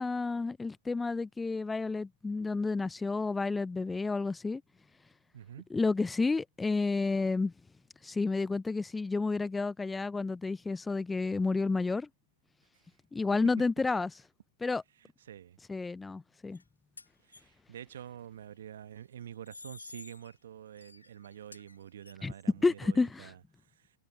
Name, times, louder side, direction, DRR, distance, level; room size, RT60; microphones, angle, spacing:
voice 1, 0.0-4.6 5.7-7.5 8.0-12.1 13.1-14.1 14.6-14.8 15.7-16.6 22.2-22.3 22.6-23.3, left 3 dB, 10° left, 0.5 m, -30 dB
voice 2, 5.3-5.7 15.0-15.6 17.3-23.4, right 10 dB, 65° right, 1.3 m, -47 dB
sound 1, 16.5-16.6 17.0-17.4 19.3-20.3 20.8-22.1, left 3 dB, 85° left, 3.0 m, -51 dB
figure-of-eight pair, 100°, 0 cm